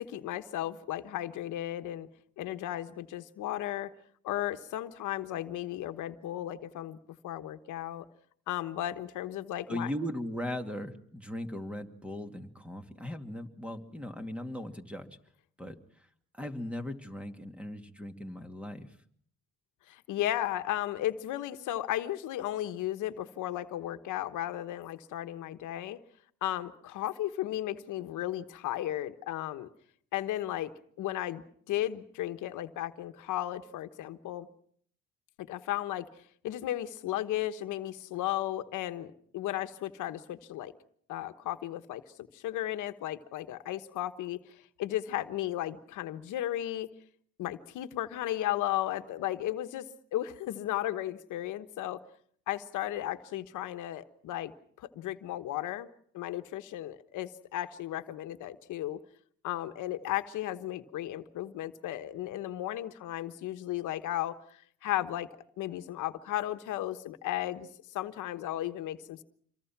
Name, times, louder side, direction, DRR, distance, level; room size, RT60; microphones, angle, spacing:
voice 1, 0.0-2.1 2.4-3.9 4.2-7.0 7.2-8.1 8.5-9.9 19.9-26.0 26.4-29.7 30.1-30.7 31.0-34.5 35.4-36.1 36.4-40.7 41.1-42.0 42.3-46.9 47.4-52.0 52.5-54.5 54.8-55.9 56.1-59.0 59.4-65.3 65.6-69.2, left 13 dB, 90° left, 9 dB, 1.2 m, -35 dB
voice 2, 9.7-15.2 15.6-15.8 16.3-18.9, equal, 5° right, 6 dB, 2.3 m, -38 dB
27.0 x 23.0 x 6.0 m, 0.62 s
cardioid pair, 90°, 30 cm